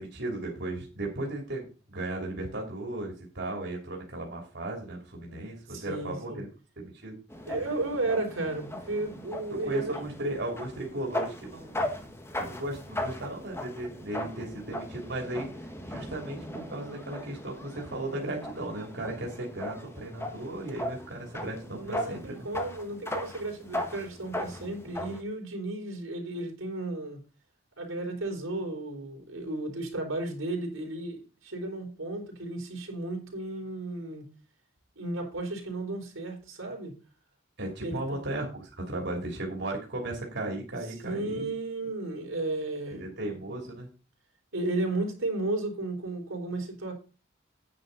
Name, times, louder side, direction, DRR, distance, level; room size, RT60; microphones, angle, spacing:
voice 1, 0.0-6.5 6.8-7.2 9.5-11.8 12.4-22.5 37.6-41.5 42.9-43.9, right 1 dB, 60° right, 3.0 m, -36 dB
voice 2, 5.7-6.4 7.5-10.0 21.8-27.2 27.8-34.2 35.0-36.9 37.8-38.2 41.0-43.1 44.5-46.9, right 2 dB, 90° right, 4.0 m, -34 dB
sound 1, 7.3-25.2, left 1 dB, 15° left, 1.5 m, -38 dB
9.8 x 9.0 x 4.0 m
head